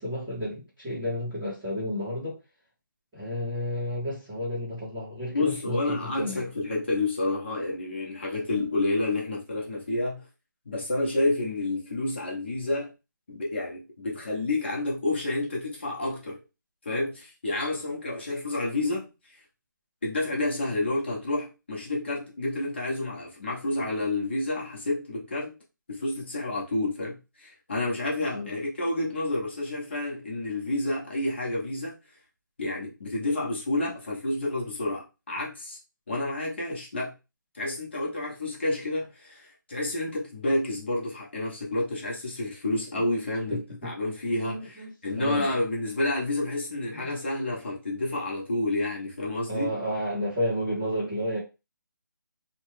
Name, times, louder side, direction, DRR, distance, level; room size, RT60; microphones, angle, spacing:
voice 1, 0.0-2.4 3.1-6.4 8.5-8.6 28.3-28.5 43.5-43.9 44.3-45.5 46.9-47.1 49.5-51.4, equal, ahead, 0.5 m, -32 dB
voice 2, 5.3-10.3 10.6-12.9 13.3-16.4 16.8-19.1 20.0-25.6 25.9-32.0 32.6-35.8 36.1-37.1 37.5-49.7, left 2 dB, 30° left, 0.9 m, -29 dB
3.0 x 2.2 x 3.1 m
hypercardioid pair, 175°, 11 cm